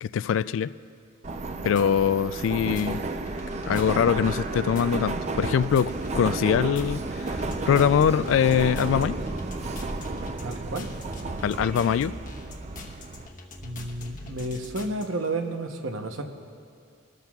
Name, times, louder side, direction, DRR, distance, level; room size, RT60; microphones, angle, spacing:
voice 1, 0.0-0.7 1.6-3.0 3.7-7.4 7.7-9.2 11.4-12.1, left 8 dB, 85° left, 17 dB, 0.3 m, -23 dB
Subway metro underground, 1.2-13.3, right 3 dB, 35° right, 0.5 m, -32 dB
sound 1, 1.5-15.1, left 2 dB, 45° left, 1.0 m, -44 dB
voice 2, 10.4-10.9 13.6-16.2, right 2 dB, 90° right, 5 dB, 0.9 m, -31 dB
22.0 x 13.5 x 2.4 m, 2.3 s
head